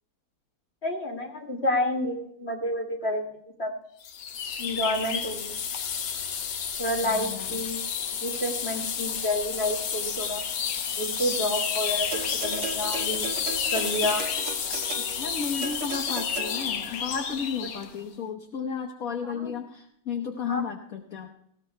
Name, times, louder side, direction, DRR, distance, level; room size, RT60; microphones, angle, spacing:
voice 1, 0.8-3.7 4.6-5.6 6.8-7.8 8.2-10.4 11.0-12.1 12.4-13.3 13.7-14.3 17.6-17.7 19.2-19.6 20.5-20.6, left 1 dB, 35° left, 1 dB, 2.5 m, -29 dB
sound 1, 4.0-17.9, left 7 dB, 75° left, 1.6 m, -31 dB
voice 2, 7.0-7.6 12.3-12.4 15.1-21.3, left 6 dB, 55° left, 3 dB, 1.4 m, -33 dB
sound 2, 12.1-16.9 17.8-17.9, right 6 dB, 85° right, 1.6 m, -37 dB
20.0 x 17.0 x 2.3 m, 0.69 s
omnidirectional pair, 2.0 m